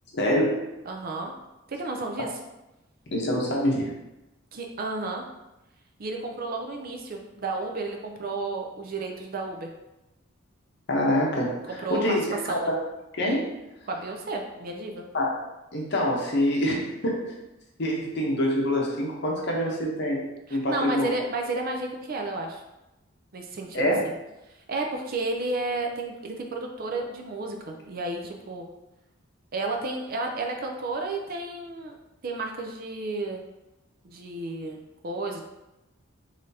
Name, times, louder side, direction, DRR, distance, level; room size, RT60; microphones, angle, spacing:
voice 1, 0.1-0.7 3.1-3.9 10.9-12.8 13.2-13.6 15.1-15.3 15.7-17.4 17.8-20.2 20.5-21.1 23.7-24.0, equal, 55° left, -1 dB, 0.8 m, -25 dB
voice 2, 0.9-1.3 1.7-2.3 4.5-5.3 6.0-9.7 11.7-12.2 12.5-12.7 13.9-15.1 20.5-22.6 23.3-23.8 24.7-28.7 29.5-31.9 32.2-33.4 34.0-35.4, right 3 dB, 45° right, 2 dB, 0.4 m, -32 dB
3.8 x 3.2 x 2.7 m, 0.95 s
head